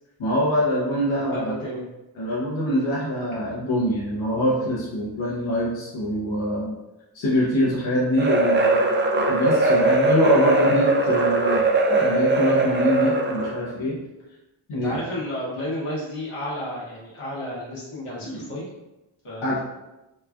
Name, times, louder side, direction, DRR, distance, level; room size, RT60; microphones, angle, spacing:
voice 1, 0.2-1.5 2.2-6.8 7.1-8.8 9.3-11.6 11.9-14.0 14.7-15.0 18.2-18.5 19.4-19.6, equal, 70° left, -6 dB, 0.8 m, -24 dB
voice 2, 1.3-1.8 14.7-18.7 19.2-19.4, equal, 90° left, -7 dB, 1.2 m, -32 dB
sound 1, 8.2-13.6, right 2 dB, 25° right, 0.4 m, -20 dB
3.0 x 2.3 x 2.4 m, 0.99 s
cardioid pair, 65°, 48 cm